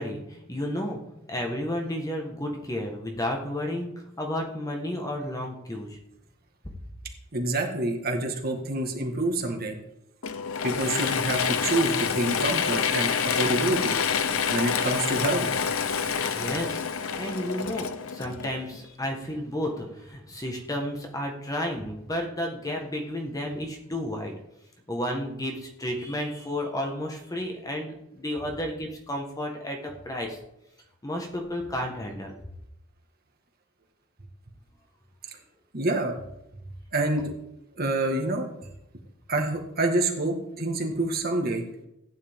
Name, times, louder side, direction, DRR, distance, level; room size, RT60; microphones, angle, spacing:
voice 1, 0.0-3.9 4.2-6.0 16.3-16.8 17.2-24.3 24.9-30.4 31.0-32.3, left 1 dB, 15° left, 2 dB, 1.4 m, -32 dB
voice 2, 7.3-9.7 10.6-13.9 14.5-15.5 35.7-36.2 36.9-37.3 37.8-38.5 39.3-41.6, right 2 dB, 45° right, 2 dB, 1.8 m, -27 dB
Mechanisms / Drill, 10.2-18.8, left 6 dB, 85° left, 0.8 m, -27 dB
14.5 x 9.7 x 3.7 m, 0.85 s
head